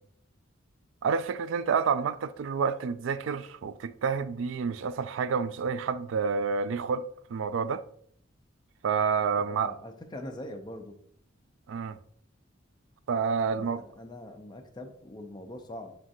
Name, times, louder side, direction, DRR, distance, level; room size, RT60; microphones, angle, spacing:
voice 1, 1.0-7.0 7.3-7.8 8.8-9.7 11.7-12.0 13.1-13.8, right 6 dB, 70° right, 0.3 m, -29 dB
voice 2, 9.3-11.0 13.5-15.9, left 1 dB, 20° left, 0.5 m, -43 dB
7.2 x 2.4 x 2.6 m
head